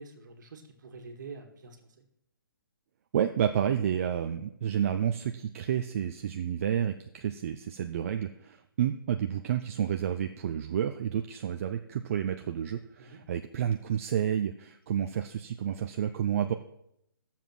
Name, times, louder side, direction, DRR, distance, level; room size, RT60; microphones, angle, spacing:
voice 1, 0.0-2.1 13.0-13.2, right 4 dB, 55° right, 5 dB, 2.1 m, -46 dB
voice 2, 3.1-16.5, right 9 dB, 40° right, 7 dB, 0.6 m, -30 dB
13.5 x 7.4 x 6.0 m, 0.77 s
hypercardioid pair, 155°, 12 cm